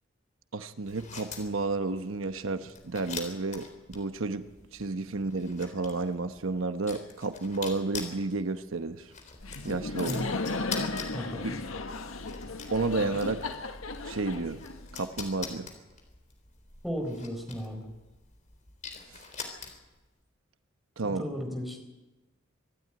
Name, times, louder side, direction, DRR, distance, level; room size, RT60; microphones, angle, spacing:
voice 1, 0.5-4.4 4.7-9.1 9.6-10.2 12.7-13.5 14.0-14.6 14.9-15.7 19.1-19.2 21.0-21.2, right 3 dB, 75° right, 10 dB, 1.0 m, -31 dB
sound 1, 0.8-20.0, left 5 dB, 40° left, 3.6 m, -44 dB
Laughter, 9.4-15.2, left 3 dB, 90° left, 1.6 m, -35 dB
voice 2, 11.1-11.6 16.8-17.9 21.0-21.8, equal, ahead, 3 dB, 4.2 m, -35 dB
25.5 x 12.5 x 9.9 m, 1.1 s
head